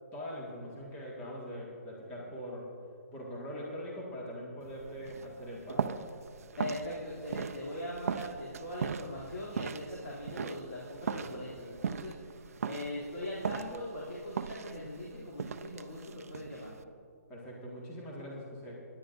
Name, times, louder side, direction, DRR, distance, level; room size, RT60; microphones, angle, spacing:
voice 1, 0.1-2.7 3.1-6.0 17.3-18.8, equal, 15° left, -4 dB, 1.8 m, -42 dB
sound 1, 4.6-16.8, right 6 dB, 65° right, 0.5 m, -39 dB
voice 2, 6.6-16.7, left 1 dB, 55° left, -7 dB, 2.9 m, -40 dB
21.5 x 10.5 x 2.6 m, 2.4 s
hypercardioid pair, 160°, 9 cm